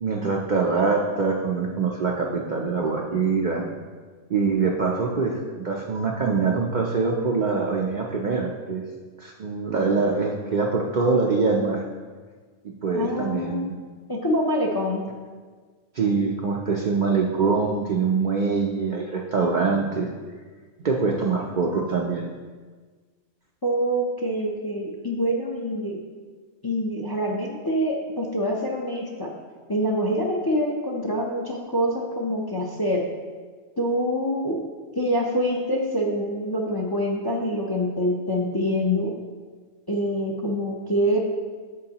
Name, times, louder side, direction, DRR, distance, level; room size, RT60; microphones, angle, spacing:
voice 1, 0.0-3.7 4.3-8.8 9.2-11.8 12.6-13.7 15.9-20.1 20.8-22.3, right 4 dB, 55° right, 0 dB, 0.5 m, -24 dB
voice 2, 12.9-13.7 14.1-15.0 23.6-26.0 26.6-29.3 29.7-33.1 33.8-34.6 35.0-39.1 39.9-41.2, equal, 30° left, 0 dB, 0.5 m, -25 dB
8.6 x 6.1 x 2.9 m, 1.5 s
omnidirectional pair, 1.3 m